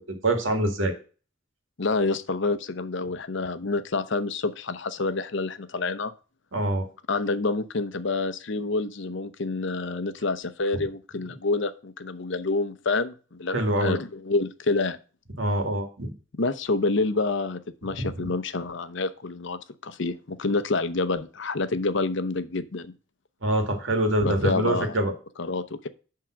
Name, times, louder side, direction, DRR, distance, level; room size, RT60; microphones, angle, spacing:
voice 1, 0.1-0.9 6.5-6.9 13.5-14.0 15.4-16.1 18.2-18.3 23.4-25.1, right 1 dB, 75° right, 4 dB, 2.0 m, -25 dB
voice 2, 1.8-6.1 7.1-15.0 16.4-22.9 24.2-25.0 25.4-25.9, left 3 dB, 65° left, 12 dB, 0.8 m, -28 dB
10.5 x 3.8 x 6.2 m, 0.36 s
head